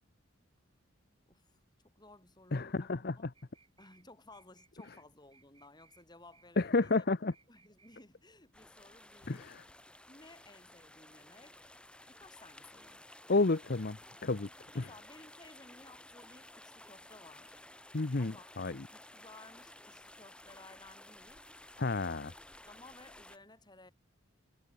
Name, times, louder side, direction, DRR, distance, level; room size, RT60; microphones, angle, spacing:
voice 1, 1.3-1.6 1.9-3.2 3.8-7.0 7.5-9.5 10.1-11.6 12.1-13.1 14.7-17.6 18.2-18.5 18.9-21.5 22.0-22.3 22.7-23.9, left 2 dB, 20° left, 6.6 m, -57 dB
voice 2, 2.5-3.2 6.6-7.3 9.3-9.6 13.3-14.5 14.8-14.9 17.9-18.8 21.8-22.3, left 3 dB, 50° left, 0.8 m, -31 dB
sound 1, 3.3-4.0 4.3-5.1 5.3-6.1 6.3-7.1 7.3-8.1, right 5 dB, 25° right, 7.7 m, -66 dB
sound 2, 8.5-23.4, left 1 dB, 5° left, 5.4 m, -55 dB
head